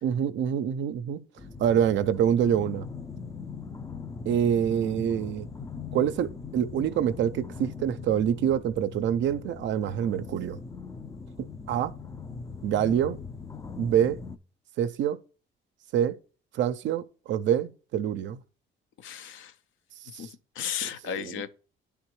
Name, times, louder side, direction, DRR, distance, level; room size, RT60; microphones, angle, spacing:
voice 1, 0.0-1.2 1.6-2.8 4.3-5.5 5.9-10.6 11.4-11.9 12.6-13.2 13.8-14.2 14.8-15.2 15.9-16.2 16.5-18.4 20.1-20.3 21.1-21.4, right 9 dB, 70° right, 0.4 m, -26 dB
sound 1, 1.4-14.4, left 5 dB, 15° left, 0.4 m, -40 dB
voice 2, 19.0-19.5 20.2-20.3 20.5-21.5, left 8 dB, 80° left, 0.5 m, -34 dB
9.6 x 3.4 x 3.0 m
cardioid pair, 90°, 20 cm